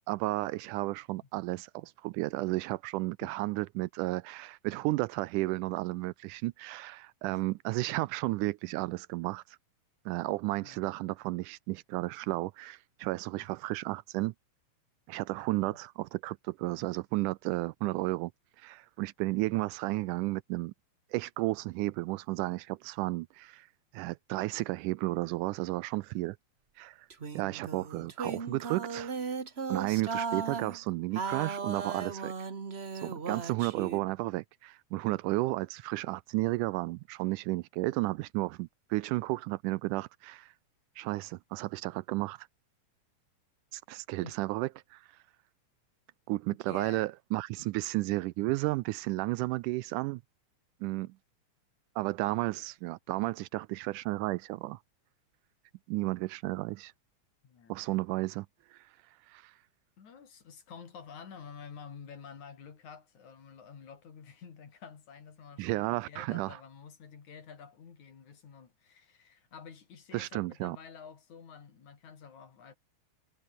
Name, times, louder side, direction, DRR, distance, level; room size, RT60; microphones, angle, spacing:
voice 1, 0.1-9.6 10.1-14.3 15.1-18.3 18.6-20.7 21.1-23.7 23.9-26.4 26.8-27.1 27.3-29.1 29.7-32.3 33.0-40.5 41.0-42.5 43.7-45.1 46.3-50.2 50.8-51.1 52.0-54.8 55.9-56.9 57.7-58.5 58.7-58.9 59.3-59.5 65.6-66.6 70.1-70.8, right 20 dB, 80° right, 2.0 m, -33 dB
sound 1, 27.1-30.8 31.1-34.0, right 5 dB, 50° right, 0.7 m, -37 dB
voice 2, 46.7-47.1 47.6-47.7 49.4-49.5 52.4-52.5 57.4-57.8 60.0-72.8, left 6 dB, 60° left, 4.4 m, -50 dB
omnidirectional pair, 3.8 m